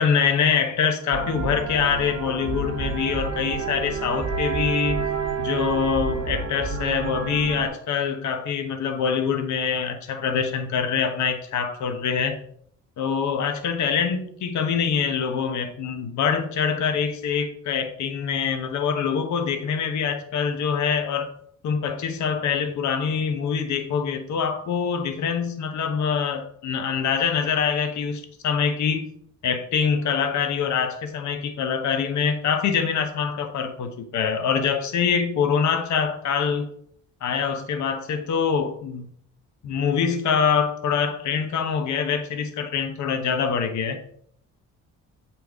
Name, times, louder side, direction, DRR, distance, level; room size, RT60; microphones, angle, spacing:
voice 1, 0.0-5.0 5.4-12.4 13.0-21.3 21.6-29.1 29.4-36.7 37.2-39.1 39.6-44.0, left 6 dB, 70° left, 6 dB, 1.1 m, -24 dB
sound 1, 1.1-7.7, right 5 dB, 60° right, 1.4 m, -29 dB
8.0 x 4.4 x 3.6 m, 0.64 s
cardioid pair, 90°, 30 cm